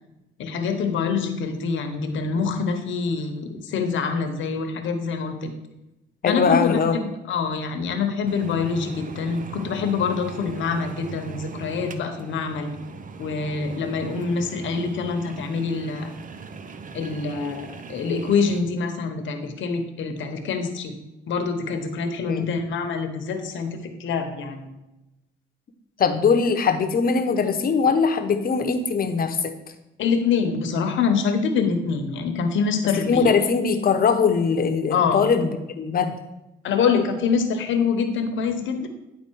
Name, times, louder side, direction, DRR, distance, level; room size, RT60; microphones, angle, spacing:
voice 1, 0.4-5.5 6.3-12.7 13.2-16.1 16.9-21.0 21.3-24.7 30.0-33.3 34.9-35.2 36.6-38.9, left 5 dB, 75° left, 6 dB, 1.1 m, -25 dB
voice 2, 6.2-7.0 22.3-22.5 26.0-29.5 32.9-36.1, left 5 dB, 45° left, 7 dB, 0.9 m, -21 dB
sound 1, 8.3-18.6, right 5 dB, 40° right, 0.6 m, -39 dB
9.9 x 4.0 x 4.6 m, 0.97 s
cardioid pair, 90°, 20 cm